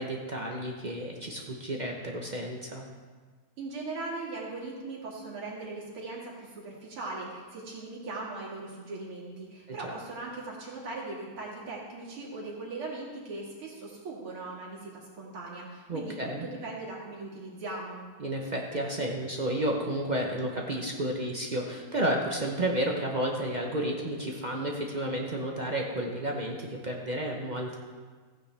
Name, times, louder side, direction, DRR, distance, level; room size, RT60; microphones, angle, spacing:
voice 1, 0.0-2.8 9.7-10.0 15.9-16.4 18.2-27.8, right 1 dB, 55° right, 0 dB, 0.4 m, -31 dB
voice 2, 3.6-18.0, right 3 dB, 85° right, -4 dB, 3.2 m, -39 dB
15.0 x 9.1 x 3.4 m, 1.5 s
omnidirectional pair, 2.3 m